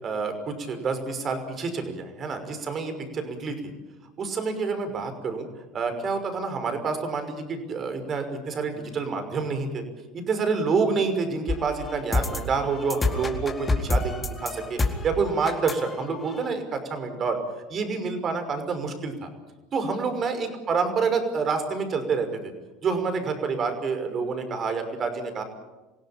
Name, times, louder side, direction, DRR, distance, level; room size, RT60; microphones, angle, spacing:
voice 1, 0.0-3.7 4.2-5.5 5.7-9.8 10.1-14.8 15.0-17.4 17.7-19.3 19.7-22.5 22.8-25.4, right 4 dB, 40° right, 8 dB, 5.8 m, -28 dB
sound 1, 11.5-16.5, left 2 dB, 20° left, 4.1 m, -28 dB
26.5 x 17.5 x 8.9 m, 1.1 s
hypercardioid pair, 85°, 0 cm